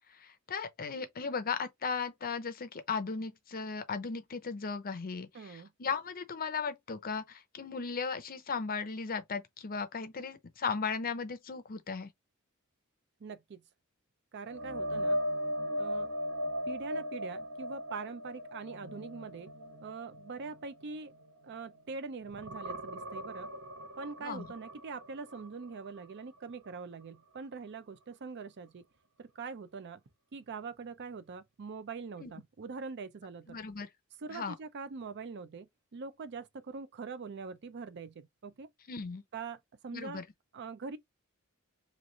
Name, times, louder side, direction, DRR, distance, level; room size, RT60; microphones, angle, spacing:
voice 1, 0.1-12.1 24.2-24.5 32.2-32.3 33.5-33.9 34.3-34.5 38.9-39.2 39.9-40.2, left 5 dB, 40° left, 0.6 m, -36 dB
voice 2, 5.3-5.7 13.2-13.6 14.3-15.2 15.8-16.1 16.7-19.5 19.8-21.1 21.4-23.5 24.0-28.8 29.2-30.0 30.3-33.6 34.2-38.7 39.3-40.2 40.5-41.0, right 4 dB, 50° right, 0.5 m, -43 dB
sound 1, 14.5-21.9 22.2-26.1 26.5-26.7 30.1-30.2, equal, 70° right, 1.0 m, -38 dB
3.2 x 2.4 x 3.9 m
head